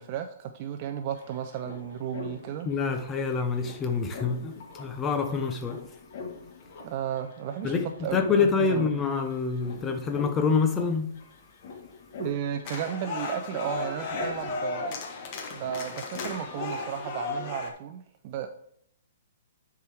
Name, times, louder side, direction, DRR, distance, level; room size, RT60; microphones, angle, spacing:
voice 1, 0.0-2.7 6.8-8.9 12.2-14.9 15.5-18.5, right 9 dB, 35° right, 0.5 m, -34 dB
sound 1, 0.6-0.7 0.9-17.6, left 4 dB, 50° left, 1.3 m, -45 dB
voice 2, 2.6-5.9 7.6-11.1, left 5 dB, 15° left, 0.7 m, -26 dB
sound 2, 12.6-17.7, left 3 dB, 35° left, 1.1 m, -35 dB
9.9 x 4.7 x 3.4 m
hypercardioid pair, 160°, 0 cm